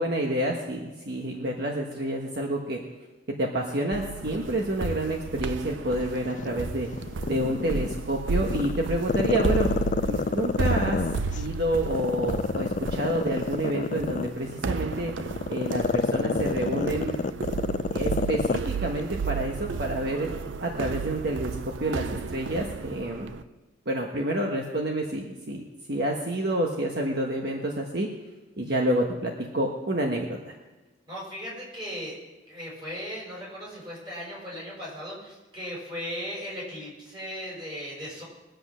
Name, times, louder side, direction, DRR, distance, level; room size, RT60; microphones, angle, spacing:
voice 1, 0.0-2.8 3.4-6.9 7.3-9.7 10.1-11.0 11.4-15.1 15.5-17.2 17.9-20.3 20.6-23.3 23.8-25.6 25.9-28.1 28.6-30.5, right 1 dB, 55° right, 1 dB, 1.3 m, -28 dB
sound 1, 3.9-23.4, right 4 dB, 80° right, 0.5 m, -33 dB
Growling, 6.2-8.0 8.4-11.4 11.9-18.7 19.0-19.1, left 4 dB, 40° left, 0.4 m, -27 dB
voice 2, 31.1-32.2 32.5-38.2, equal, 25° right, -4 dB, 6.0 m, -37 dB
21.5 x 7.9 x 6.3 m, 1.1 s
head